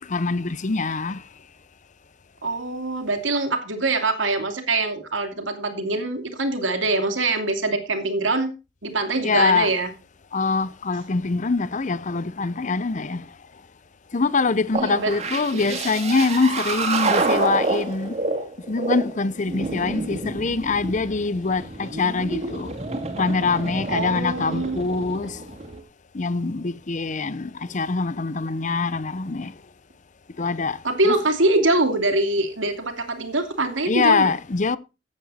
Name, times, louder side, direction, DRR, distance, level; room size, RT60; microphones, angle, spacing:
voice 1, 0.1-1.2 9.2-9.7 10.3-13.2 14.1-18.1 18.7-22.7 23.2-25.4 26.1-29.5 30.4-31.1 33.9-34.8, left 4 dB, 40° left, 0.7 m, -24 dB
voice 2, 2.4-8.5 8.8-9.9 14.7-15.1 15.5-15.8 23.9-24.8 30.8-34.3, right 2 dB, 90° right, 2.7 m, -24 dB
sound 1, 14.7-25.8, right 3 dB, 35° right, 2.5 m, -28 dB
15.0 x 8.7 x 4.2 m
head